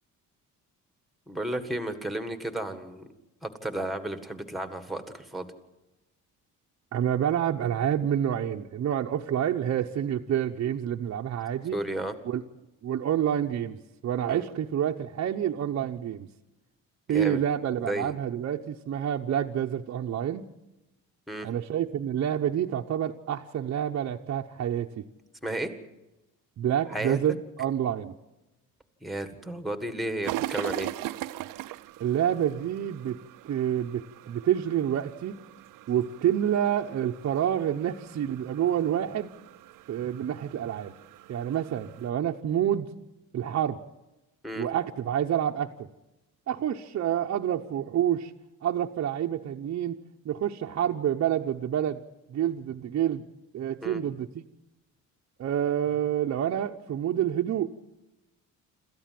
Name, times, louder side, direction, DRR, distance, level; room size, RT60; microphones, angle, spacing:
voice 1, 1.3-3.1 3.4-5.5 11.7-12.1 14.3-14.5 17.1-17.4 17.8-18.1 21.3-21.5 25.4-25.7 26.9-27.2 29.0-30.9 44.4-44.7 53.8-54.0, right 1 dB, ahead, 8 dB, 1.7 m, -33 dB
voice 2, 6.9-11.8 12.2-12.4 12.8-16.3 17.1-20.5 21.4-25.0 26.6-28.1 32.0-33.2 33.4-35.4 35.9-39.3 39.9-40.9 41.3-42.9 43.3-43.8 44.6-45.9 46.5-48.3 48.6-50.0 50.2-52.0 52.3-53.2 53.5-54.4 55.4-57.7, right 10 dB, 50° right, 0 dB, 0.9 m, -28 dB
sound 1, 30.2-42.1, right 15 dB, 85° right, 0.7 m, -41 dB
27.0 x 14.5 x 7.6 m, 1.0 s
cardioid pair, 145°, 32 cm